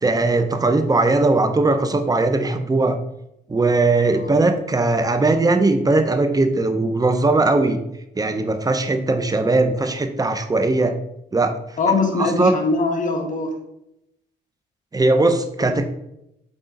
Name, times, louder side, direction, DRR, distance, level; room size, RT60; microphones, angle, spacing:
voice 1, 0.0-3.0 3.5-7.8 8.2-11.0 11.3-11.6 12.2-12.5 14.9-15.9, right 2 dB, 20° right, 8 dB, 0.8 m, -19 dB
voice 2, 11.8-13.5 15.6-15.7, left 3 dB, 40° left, 1 dB, 1.7 m, -22 dB
7.9 x 3.8 x 4.0 m, 0.82 s
cardioid pair, 90°, 20 cm